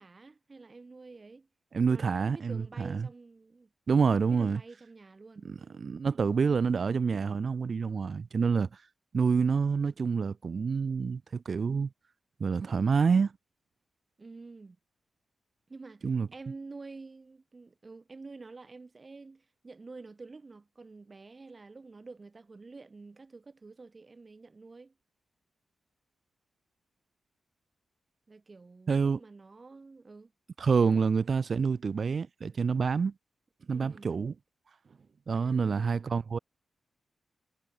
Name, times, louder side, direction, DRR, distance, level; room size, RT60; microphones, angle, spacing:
voice 1, 0.0-1.5 1.9-3.7 4.2-5.5 14.2-14.8 15.7-24.9 28.3-30.3 30.8-31.0 33.7-34.1 35.3-36.0, right 3 dB, 35° right, 6.3 m, -49 dB
voice 2, 1.7-3.1 3.9-4.6 5.4-8.7 9.1-11.9 12.4-13.3 16.0-16.3 28.9-29.2 30.6-33.1 33.7-34.3 35.3-36.4, right 5 dB, 50° right, 0.9 m, -27 dB
wide cardioid pair, 100°, 0 cm